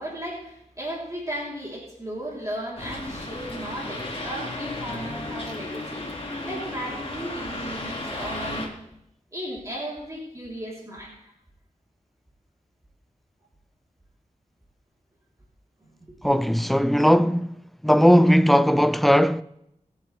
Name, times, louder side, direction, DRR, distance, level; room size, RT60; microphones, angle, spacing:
voice 1, 0.0-6.1 6.4-8.7 9.3-11.3 16.2-16.4, right 1 dB, 25° right, 3.6 m, -35 dB
sound 1, 2.8-8.7, left 2 dB, 45° left, 2.4 m, -34 dB
voice 2, 16.2-17.5 17.8-19.4, equal, ahead, 0.5 m, -18 dB
21.5 x 8.4 x 3.4 m
wide cardioid pair, 60°, 14 cm